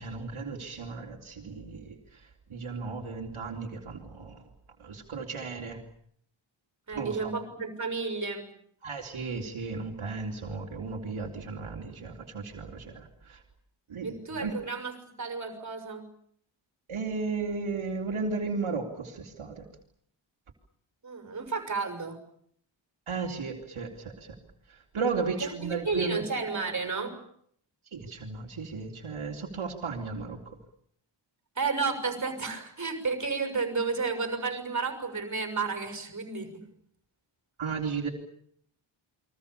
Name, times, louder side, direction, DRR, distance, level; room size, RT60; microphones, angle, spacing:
voice 1, 0.0-4.5 4.8-5.8 6.9-7.3 8.8-13.4 13.9-14.6 16.9-19.7 23.1-24.4 24.7-26.3 27.9-30.6 37.6-38.1, right 4 dB, 70° right, 0 dB, 3.8 m, -35 dB
voice 2, 6.9-8.5 14.0-16.1 21.0-22.2 25.4-27.2 31.6-36.6, right 4 dB, 35° right, 7 dB, 6.5 m, -32 dB
30.0 x 23.5 x 7.0 m, 0.66 s
wide cardioid pair, 175°, 50 cm